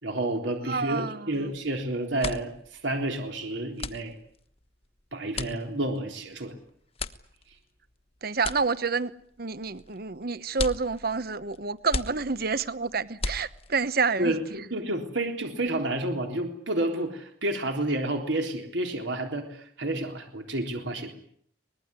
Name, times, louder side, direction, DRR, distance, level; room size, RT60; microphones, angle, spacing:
voice 1, 0.0-4.2 5.1-6.5 14.2-21.1, right 1 dB, 70° right, 3.7 m, -30 dB
voice 2, 0.6-1.5 8.2-9.1 9.4-14.4, right 4 dB, 50° right, 1.0 m, -28 dB
sound 1, 1.5-1.7 2.0-14.0, left 3 dB, 30° left, 1.2 m, -38 dB
24.5 x 20.0 x 9.8 m
head